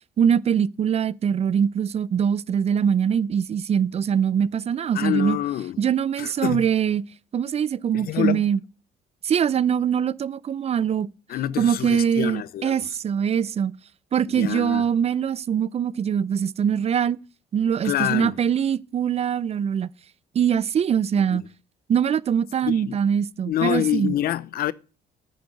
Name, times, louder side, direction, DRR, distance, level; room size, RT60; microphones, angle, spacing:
voice 1, 0.2-5.4 5.8-7.0 7.3-8.6 9.2-11.1 11.6-13.7 14.1-17.2 17.5-19.9 20.3-21.4 21.9-24.1, right 8 dB, 40° right, 0.5 m, -23 dB
voice 2, 4.9-5.8 6.2-6.7 7.9-8.4 11.3-12.9 14.3-14.8 17.8-18.3 21.1-21.4 22.6-23.0 23.5-24.7, left 12 dB, 65° left, 0.8 m, -26 dB
9.4 x 9.4 x 7.7 m
cardioid pair, 110°, 17 cm